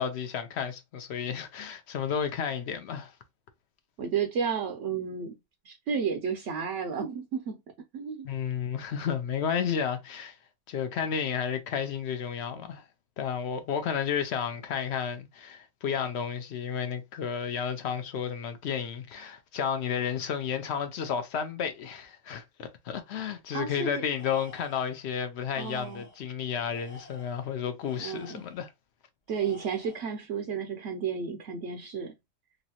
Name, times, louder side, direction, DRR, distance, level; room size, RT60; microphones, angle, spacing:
voice 1, 0.0-3.1 8.2-10.4 10.7-12.8 13.2-28.7, left 7 dB, 65° left, 0.7 m, -32 dB
voice 2, 4.0-5.4 5.6-7.6 7.9-8.3 23.5-23.9 25.6-26.0 28.0-28.4 29.3-32.1, right 6 dB, 65° right, 0.8 m, -32 dB
Tools, 24.1-25.0 25.5-26.3 26.7-28.6 29.3-30.2, left 1 dB, 30° left, 1.0 m, -52 dB
3.1 x 2.5 x 2.7 m
omnidirectional pair, 1.6 m